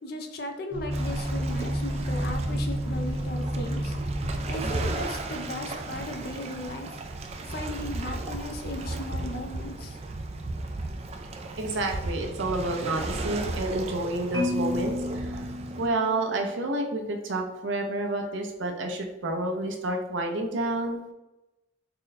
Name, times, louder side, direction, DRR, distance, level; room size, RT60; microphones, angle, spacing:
voice 1, 0.0-4.0 4.5-6.9 7.5-10.0, left 1 dB, 50° left, 4 dB, 0.5 m, -36 dB
sound 1, 0.7-5.9, equal, 10° right, 0.7 m, -31 dB
Waves surf, 0.9-15.9, right 2 dB, 30° right, 0.3 m, -35 dB
voice 2, 11.6-15.5 15.8-21.0, right 2 dB, 70° right, 2 dB, 0.6 m, -29 dB
Marimba xylophone, 14.3-16.5, left 2 dB, 25° left, 0.9 m, -32 dB
3.7 x 2.2 x 4.0 m, 0.96 s
head